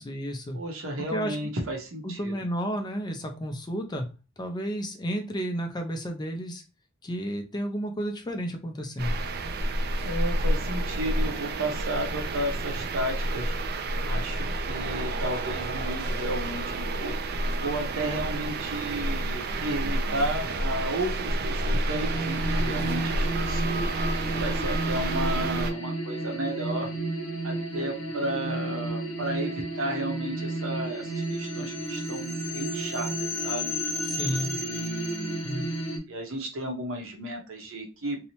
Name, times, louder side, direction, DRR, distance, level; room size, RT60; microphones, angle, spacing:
voice 1, 0.0-0.6 1.1-1.4 2.0-4.1 4.4-6.6 7.0-9.2 34.0-34.6 35.4-35.7, equal, 20° left, 4 dB, 0.4 m, -32 dB
voice 2, 0.5-2.4 10.0-13.5 14.0-26.9 27.4-33.7 34.6-38.2, right 1 dB, 75° right, 2 dB, 0.7 m, -33 dB
sound 1, 9.0-25.7, right 1 dB, 50° right, 0.3 m, -29 dB
sound 2, 21.9-36.0, right 1 dB, 85° left, 0.7 m, -32 dB
2.7 x 2.0 x 2.8 m, 0.31 s
head